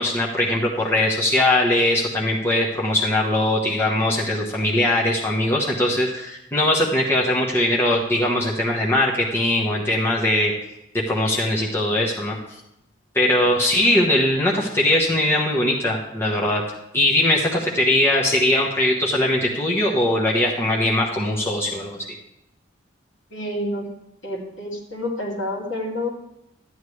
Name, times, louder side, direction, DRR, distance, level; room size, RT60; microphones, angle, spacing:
voice 1, 0.0-10.5 11.1-12.3 13.1-16.6 16.9-22.0, left 1 dB, 10° left, -4 dB, 1.2 m, -20 dB
voice 2, 23.3-23.9 24.2-26.1, left 1 dB, 70° left, -2 dB, 2.4 m, -28 dB
12.5 x 9.0 x 3.3 m, 0.83 s
head